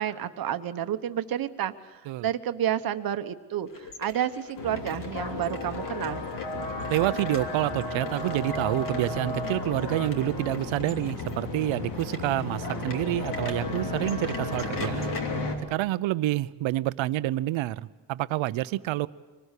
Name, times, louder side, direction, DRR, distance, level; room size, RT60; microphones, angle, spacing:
voice 1, 0.0-6.2, right 10 dB, 50° right, 1.1 m, -30 dB
sound 1, 3.7-15.2, left 4 dB, 45° left, 2.7 m, -43 dB
sound 2, 4.6-15.6, left 2 dB, 65° left, 3.3 m, -33 dB
voice 2, 6.9-15.2 15.7-19.1, right 16 dB, 85° right, 0.8 m, -28 dB
25.0 x 19.5 x 8.3 m
cardioid pair, 155°, 45 cm